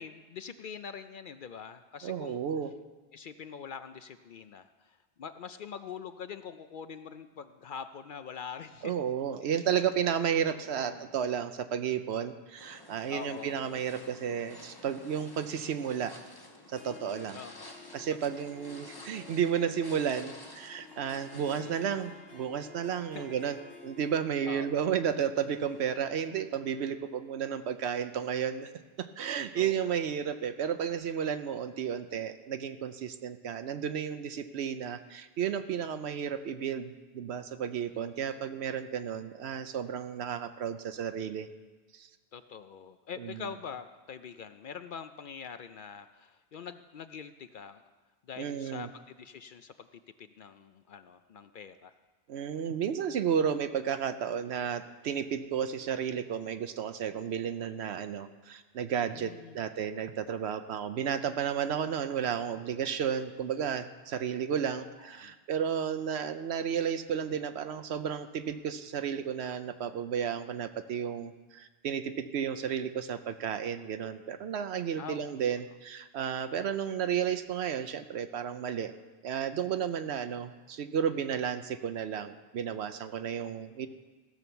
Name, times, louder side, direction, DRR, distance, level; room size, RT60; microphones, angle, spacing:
voice 1, 0.0-2.4 3.1-8.9 9.4-9.6 10.5-11.0 13.1-13.6 17.3-17.7 18.2-18.4 21.3-22.0 23.1-23.3 24.5-24.9 29.5-30.1 37.9-38.1 42.3-47.8 48.2-48.9 49.2-51.9 59.1-59.6 64.8-64.9 65.1-65.4 75.0-75.3, left 7 dB, 60° left, 10 dB, 0.6 m, -44 dB
voice 2, 2.0-2.7 8.8-16.2 16.7-17.4 17.9-28.7 29.0-41.5 41.9-42.1 43.2-43.5 48.4-48.9 52.3-79.0 79.2-83.9, right 8 dB, 75° right, 10 dB, 0.9 m, -32 dB
sound 1, 12.6-21.6, left 2 dB, 20° left, 1.0 m, -51 dB
Harp, 16.6-28.5, left 4 dB, 80° left, 1.7 m, -53 dB
15.5 x 6.2 x 6.9 m, 1.3 s
omnidirectional pair, 1.1 m